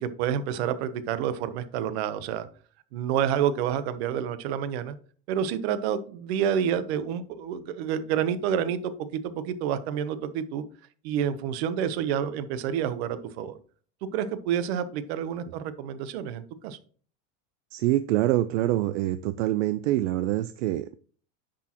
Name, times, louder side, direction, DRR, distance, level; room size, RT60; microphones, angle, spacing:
voice 1, 0.0-2.4 2.9-5.0 5.3-10.6 11.0-13.6 14.0-16.8, right 9 dB, 55° right, 13 dB, 0.9 m, -29 dB
voice 2, 17.7-21.0, right 15 dB, 75° right, 13 dB, 0.5 m, -25 dB
9.9 x 6.3 x 2.9 m, 0.43 s
supercardioid pair, 180°, 37 cm